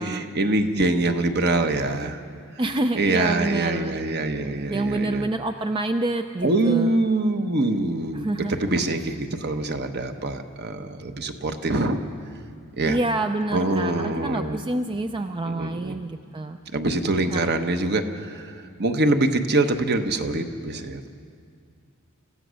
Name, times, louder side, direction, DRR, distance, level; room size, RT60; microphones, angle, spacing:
voice 1, 0.0-2.2 2.9-5.3 6.4-8.3 8.6-12.0 12.8-13.0 13.5-14.6 15.4-16.0 16.7-21.1, right 2 dB, 50° right, 6 dB, 1.1 m, -24 dB
voice 2, 2.6-4.3 4.7-7.0 8.1-8.7 12.9-16.6 17.3-17.5, right 2 dB, 20° right, 7 dB, 0.4 m, -28 dB
26.5 x 15.5 x 6.4 m, 2.2 s
head